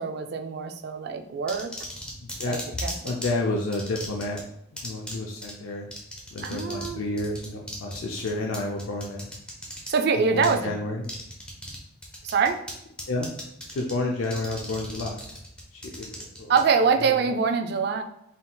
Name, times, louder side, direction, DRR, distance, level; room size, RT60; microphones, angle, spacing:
voice 1, 0.0-1.7 2.5-3.1 6.4-7.0 9.9-10.7 12.2-12.6 16.5-18.0, right 5 dB, 50° right, 6 dB, 0.3 m, -24 dB
sound 1, 1.5-3.3 3.7-4.4 4.8-5.1 5.4-5.5 5.9-6.9 7.2-9.9 10.4-10.5 11.0-11.8 12.0-12.7 13.0-13.9 14.2-16.6, left 1 dB, 5° left, 0.7 m, -37 dB
voice 2, 2.2-2.6 3.0-4.4 4.8-5.9 6.3-9.3 10.2-11.0 13.1-13.3 13.7-15.2 15.7-16.6 17.0-17.3, left 2 dB, 80° left, 0 dB, 0.4 m, -30 dB
3.9 x 3.8 x 2.2 m, 0.79 s
head